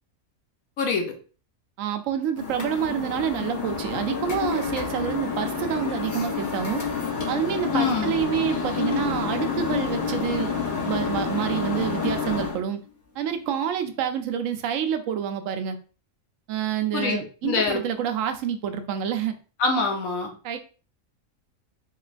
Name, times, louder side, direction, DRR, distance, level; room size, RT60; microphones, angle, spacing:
voice 1, 0.8-1.1 7.7-8.1 16.9-17.8 19.6-20.3, left 4 dB, 90° left, 2 dB, 1.3 m, -25 dB
voice 2, 1.8-6.8 7.3-10.5 10.8-12.8 13.2-15.8 16.5-19.3 20.4-20.6, right 9 dB, 75° right, 7 dB, 0.9 m, -28 dB
sound 1, 2.4-12.6, left 5 dB, 45° left, 0.7 m, -29 dB
3.7 x 3.1 x 2.4 m, 0.38 s
omnidirectional pair, 1.4 m